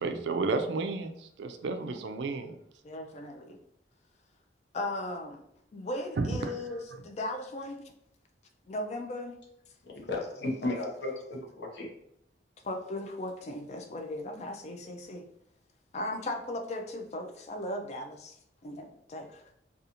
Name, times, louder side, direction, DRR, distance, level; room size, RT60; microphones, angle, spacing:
voice 1, 0.0-2.6 6.2-6.5, right 3 dB, 75° right, 7 dB, 0.3 m, -32 dB
voice 2, 2.8-3.6 4.7-5.4 5.7-7.9 8.7-9.3 12.6-15.3 15.9-18.4 18.6-19.4, left 1 dB, 40° left, 4 dB, 0.3 m, -37 dB
voice 3, 9.8-11.9, left 2 dB, 70° left, 0 dB, 0.7 m, -34 dB
2.5 x 2.4 x 2.8 m, 0.75 s
head